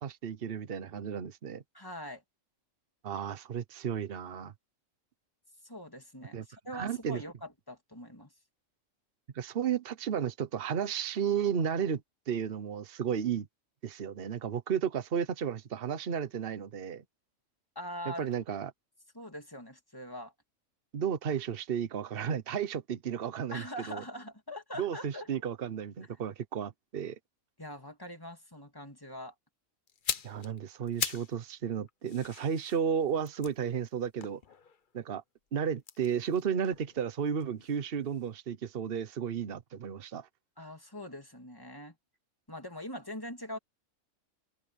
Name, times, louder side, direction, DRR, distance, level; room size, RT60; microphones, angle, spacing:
voice 1, 0.0-1.6 3.0-4.5 6.3-6.4 6.7-7.2 9.3-13.5 13.8-17.0 18.0-18.7 20.9-24.0 24.8-27.2 30.2-34.4 34.9-35.2 35.5-40.3, right 8 dB, 50° right, 1.1 m, -33 dB
voice 2, 1.7-2.2 5.6-8.3 17.7-18.3 19.1-20.3 23.5-25.3 27.6-29.3 40.6-41.9 42.5-43.6, equal, 15° left, 3.0 m, -42 dB
sound 1, 29.9-31.4 31.7-35.0 35.8-37.8 38.1-38.3, left 6 dB, 45° left, 1.0 m, -40 dB
open air
omnidirectional pair, 1.4 m